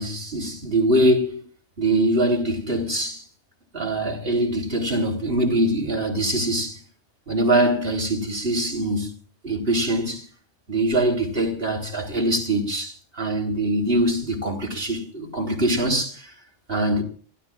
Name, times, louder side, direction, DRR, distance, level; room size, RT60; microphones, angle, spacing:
voice 1, 0.0-1.4 1.8-3.2 3.7-6.8 7.3-9.1 9.4-10.3 10.7-16.3 16.7-17.0, right 1 dB, 50° right, 3.9 m, -23 dB
28.5 x 16.0 x 2.5 m
omnidirectional pair, 1.3 m